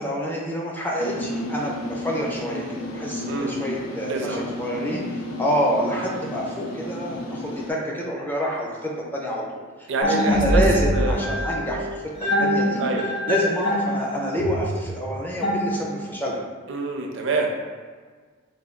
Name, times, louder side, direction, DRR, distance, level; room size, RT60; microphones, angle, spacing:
voice 1, 0.0-12.0 12.4-12.8 13.3-16.4, equal, 10° left, -3 dB, 0.4 m, -28 dB
sound 1, 1.0-7.7, left 1 dB, 85° left, 0.5 m, -33 dB
voice 2, 3.3-3.6 4.1-4.5 9.9-10.6 10.9-11.2 12.8-13.0 16.7-17.5, right 3 dB, 60° right, 1 dB, 0.4 m, -26 dB
sound 2, 10.0-16.2, equal, 45° left, 1.0 m, -24 dB
3.3 x 2.2 x 3.6 m, 1.5 s
head